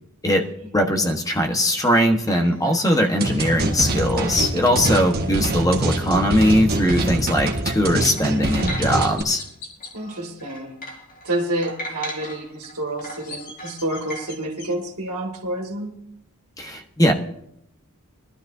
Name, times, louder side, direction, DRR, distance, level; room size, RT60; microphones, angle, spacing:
voice 1, 0.2-9.4 16.6-17.1, equal, 15° left, 3 dB, 1.2 m, -20 dB
sound 1, 1.6-7.3 7.7-7.8 8.0-9.5 9.8-14.3, equal, 40° left, 2.2 m, -39 dB
sound 2, 3.2-9.2, right 2 dB, 45° right, 1.5 m, -24 dB
voice 2, 4.6-4.9 9.9-10.8 11.2-15.9, right 1 dB, 75° right, -1 dB, 2.1 m, -29 dB
Chirp tweet, 8.3-8.4 9.2-9.9 12.9-14.7, left 4 dB, 90° left, 4.2 m, -41 dB
21.0 x 12.5 x 2.7 m, 0.75 s
head